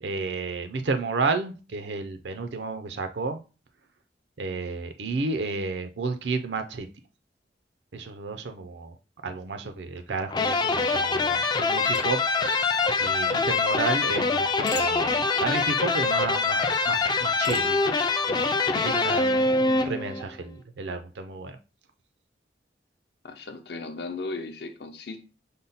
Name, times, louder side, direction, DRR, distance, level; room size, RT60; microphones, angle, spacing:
voice 1, 0.0-3.4 4.4-6.9 7.9-9.0 9.2-12.2 13.0-17.8 18.3-18.5 18.7-21.6, right 4 dB, 80° right, 0.5 m, -31 dB
sound 1, 10.3-20.3, left 3 dB, 25° left, 0.3 m, -24 dB
sound 2, 11.9-13.2 14.7-16.1 17.4-18.7, left 3 dB, 90° left, 0.9 m, -39 dB
voice 2, 23.2-25.2, left 3 dB, 65° left, 0.7 m, -36 dB
5.3 x 2.1 x 4.0 m
head